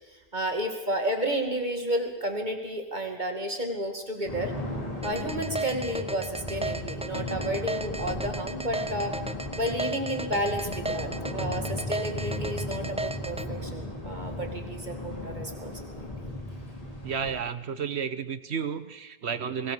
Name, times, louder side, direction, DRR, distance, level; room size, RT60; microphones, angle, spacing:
voice 1, 0.1-4.5 5.0-9.1 9.5-15.7 16.0-16.1, right 1 dB, 45° right, 4 dB, 2.4 m, -31 dB
sound 1, 4.3-17.4, left 1 dB, 35° left, 3.2 m, -36 dB
sound 2, 5.0-13.4, right 2 dB, 5° right, 0.7 m, -34 dB
voice 2, 17.0-19.7, right 7 dB, 90° right, 12 dB, 1.3 m, -32 dB
22.0 x 18.5 x 6.9 m, 1.1 s
omnidirectional pair, 1.1 m